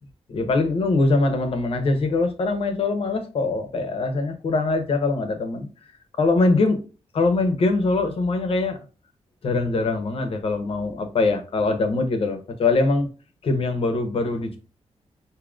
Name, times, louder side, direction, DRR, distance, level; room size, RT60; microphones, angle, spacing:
voice 1, 0.3-5.7 6.2-6.8 7.1-8.8 9.4-13.1 13.4-14.6, left 3 dB, 55° left, 0.8 m, -22 dB
4.9 x 2.7 x 2.4 m
wide cardioid pair, 175°, 12 cm